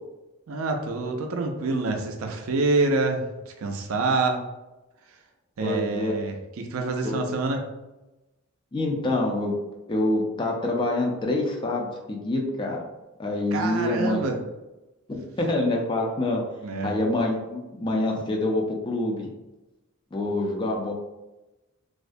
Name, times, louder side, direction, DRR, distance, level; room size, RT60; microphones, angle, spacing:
voice 1, 0.5-4.4 5.6-7.6 13.5-14.3 16.6-17.0, right 3 dB, 70° right, 4 dB, 0.4 m, -26 dB
voice 2, 5.6-6.1 7.0-7.2 8.7-9.6 9.9-12.8 13.2-14.4 15.1-16.4 16.8-19.3 20.1-20.9, left 2 dB, 20° left, 0 dB, 0.3 m, -26 dB
2.3 x 2.1 x 2.5 m, 1.0 s
head